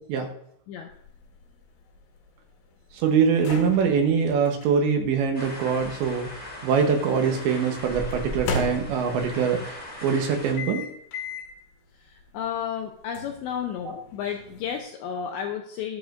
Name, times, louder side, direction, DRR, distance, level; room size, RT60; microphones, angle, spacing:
sound 1, 0.9-7.0 8.1-9.4 10.6-11.6 12.1-12.2 13.2-14.8, left 3 dB, 70° left, 4.1 m, -37 dB
voice 1, 2.9-10.9, right 6 dB, 75° right, 3 dB, 3.0 m, -23 dB
sound 2, 5.3-10.5, equal, 35° left, 0.7 m, -38 dB
voice 2, 12.0-16.0, left 8 dB, 90° left, 3 dB, 2.5 m, -32 dB
19.5 x 7.3 x 2.6 m, 0.70 s
omnidirectional pair, 5.9 m